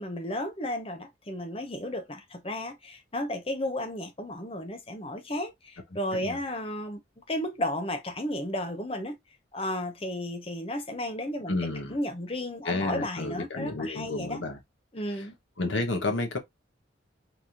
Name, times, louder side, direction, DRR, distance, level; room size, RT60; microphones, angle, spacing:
voice 1, 0.0-9.1 9.5-11.6 11.9-14.4 14.9-15.3, left 1 dB, 30° left, 0.9 m, -33 dB
voice 2, 11.5-12.0 12.6-14.6 15.6-16.4, left 2 dB, 90° left, 1.2 m, -30 dB
4.2 x 3.5 x 2.9 m
head